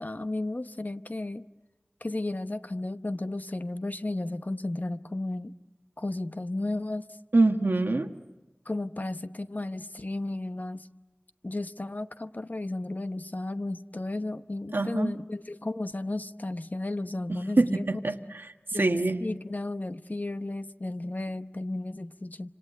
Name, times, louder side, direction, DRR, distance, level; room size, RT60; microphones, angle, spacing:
voice 1, 0.0-1.4 2.0-5.5 6.0-7.0 8.7-10.9 11.4-18.0 18.7-22.5, left 2 dB, 50° left, 10 dB, 0.9 m, -34 dB
voice 2, 7.3-8.1 14.7-15.1 17.3-18.5 18.7-19.2, right 2 dB, 80° right, 7 dB, 1.4 m, -25 dB
27.5 x 26.5 x 8.1 m, 1.1 s
wide cardioid pair, 40°, 4 cm